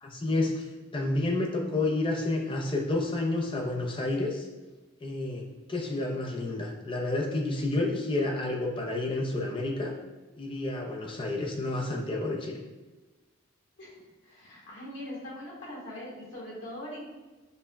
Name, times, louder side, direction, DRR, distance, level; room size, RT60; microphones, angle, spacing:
voice 1, 0.0-4.5 5.0-5.4 5.7-9.9 10.4-12.6, left 2 dB, 25° left, 0 dB, 0.4 m, -30 dB
voice 2, 14.2-17.0, left 1 dB, 70° left, -7 dB, 1.4 m, -41 dB
5.3 x 2.1 x 2.2 m, 1.2 s
head